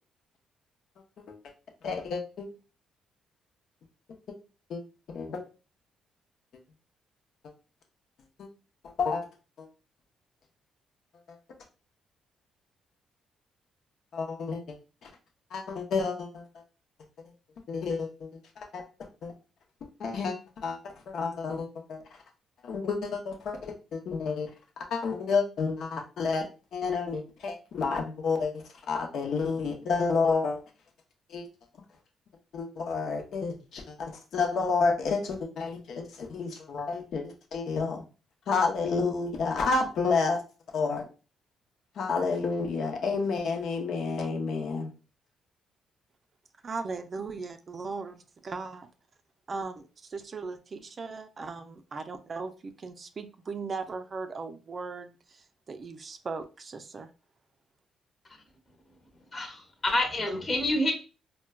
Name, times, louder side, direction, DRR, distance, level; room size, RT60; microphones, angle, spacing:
voice 1, 1.8-2.5 4.7-4.8 5.1-5.4 8.4-8.5 8.8-9.3 9.6-9.7 11.3-11.4 14.1-14.8 15.0-15.1 15.5-16.6 17.7-18.8 19.2-19.3 20.0-22.2 22.6-24.5 24.8-30.6 31.3-31.5 32.5-38.0 38.5-40.4 40.7-41.1 42.0-44.9, left 4 dB, 70° left, 3 dB, 0.7 m, -30 dB
voice 2, 46.6-48.9 49.5-57.1, right 4 dB, 40° right, 8 dB, 0.4 m, -38 dB
voice 3, 59.3-60.9, left 1 dB, 25° left, 2 dB, 1.0 m, -28 dB
4.4 x 2.1 x 2.2 m, 0.33 s
cardioid pair, 90°, 0 cm